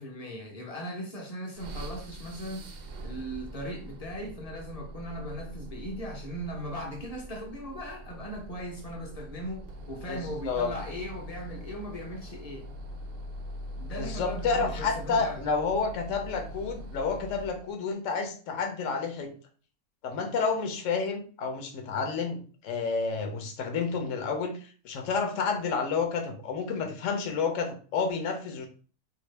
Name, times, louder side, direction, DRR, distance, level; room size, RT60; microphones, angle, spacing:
voice 1, 0.0-2.7 3.0-12.7 13.8-15.4 21.4-21.5, equal, 30° left, 0.9 m, -38 dB
sound 1, 1.6-17.7, equal, 65° right, 0.6 m, -42 dB
voice 2, 10.1-10.7 14.0-19.3 20.0-28.7, left 5 dB, 60° left, 1.1 m, -30 dB
4.8 x 2.7 x 3.3 m
omnidirectional pair, 1.6 m